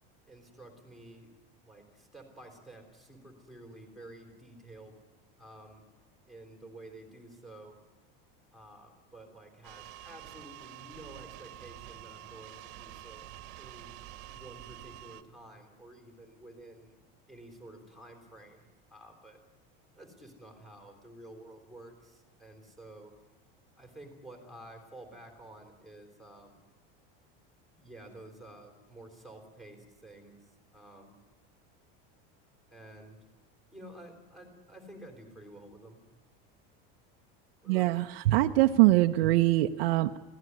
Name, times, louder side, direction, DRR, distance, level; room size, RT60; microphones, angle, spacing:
voice 1, 0.3-1.3 1.6-5.0 5.4-5.9 6.3-7.8 8.5-13.9 14.3-17.0 17.3-19.4 19.9-23.1 23.8-26.6 27.7-31.2 32.7-33.2 33.7-36.0 37.6-38.1, right 1 dB, ahead, 2 dB, 3.5 m, -51 dB
sound 1, 9.6-15.2, right 14 dB, 50° right, 1.4 m, -48 dB
voice 2, 37.7-40.2, right 16 dB, 85° right, 4 dB, 0.9 m, -23 dB
24.0 x 16.0 x 9.5 m, 1.2 s
cardioid pair, 170°, 30 cm